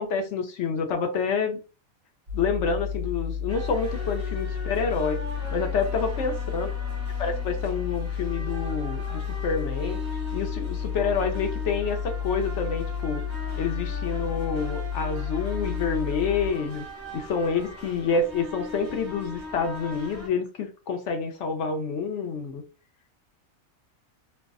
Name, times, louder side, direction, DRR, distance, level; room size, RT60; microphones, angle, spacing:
voice 1, 0.0-1.6 2.3-5.2 5.5-6.7 7.2-10.0 10.3-13.2 13.6-16.8 17.1-22.6, left 5 dB, 65° left, 0.8 m, -28 dB
sound 1, 2.3-16.5, left 7 dB, 55° right, 0.9 m, -31 dB
sound 2, 3.5-20.3, left 1 dB, 15° left, 0.5 m, -40 dB
2.6 x 2.1 x 2.4 m
omnidirectional pair, 1.5 m